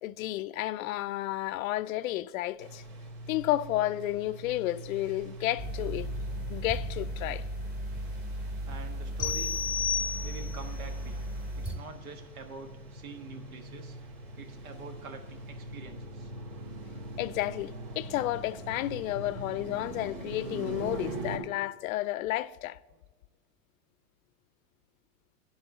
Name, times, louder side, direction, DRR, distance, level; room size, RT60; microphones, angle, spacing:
voice 1, 0.0-2.8 3.3-6.1 6.5-7.4 17.2-22.8, left 15 dB, 75° left, 0.5 m, -32 dB
sound 1, 2.6-21.4, right 2 dB, 65° right, 2.9 m, -43 dB
sound 2, 5.6-11.8, right 1 dB, 25° right, 2.4 m, -36 dB
voice 2, 8.6-9.7 10.2-11.2 11.5-14.0 14.3-16.3, right 4 dB, 80° right, 1.5 m, -46 dB
sound 3, 9.2-10.7, left 7 dB, 25° left, 0.4 m, -32 dB
10.5 x 4.3 x 7.7 m
hypercardioid pair, 120°, 41 cm